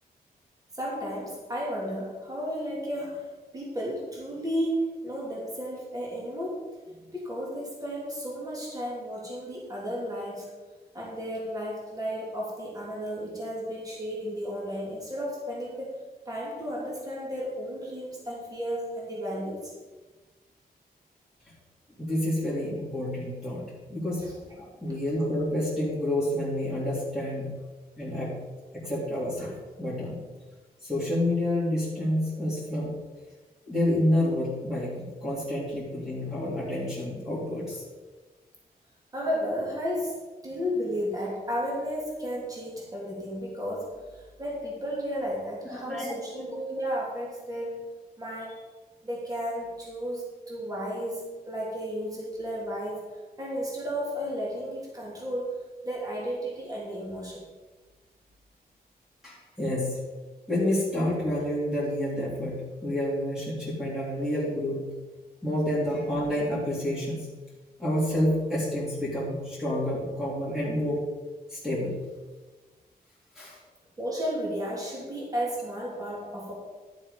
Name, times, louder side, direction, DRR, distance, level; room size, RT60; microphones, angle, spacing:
voice 1, 0.7-6.6 6.9-10.5 10.9-16.0 16.2-19.7 24.2-24.3 39.1-40.1 40.4-47.9 48.2-48.6 49.0-53.1 53.4-55.5 55.8-57.4 74.0-76.5, equal, 20° right, -4 dB, 2.9 m, -33 dB
voice 2, 22.0-24.2 24.6-27.6 28.0-28.4 28.7-30.2 30.8-33.0 33.7-37.8 45.7-46.2 59.2-60.0 60.5-64.8 65.4-67.3 67.8-71.0 71.5-72.0 73.4-73.6, left 1 dB, 5° right, -8 dB, 3.4 m, -29 dB
12.0 x 7.4 x 5.2 m, 1.3 s
wide cardioid pair, 135°, 16 cm